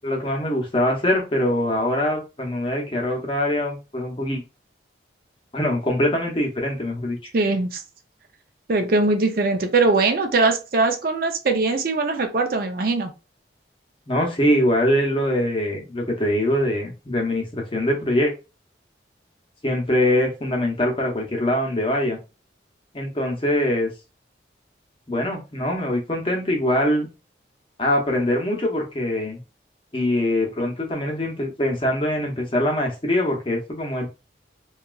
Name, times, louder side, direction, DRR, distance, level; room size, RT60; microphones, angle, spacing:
voice 1, 0.0-4.4 5.5-7.3 14.1-18.3 19.6-22.2 22.9-23.9 25.1-27.1 27.8-29.4 29.9-34.1, left 1 dB, 30° left, 1 dB, 0.7 m, -23 dB
voice 2, 7.3-7.8 8.7-13.1, right 3 dB, 50° right, 5 dB, 0.4 m, -21 dB
2.9 x 2.3 x 2.3 m, 0.29 s
head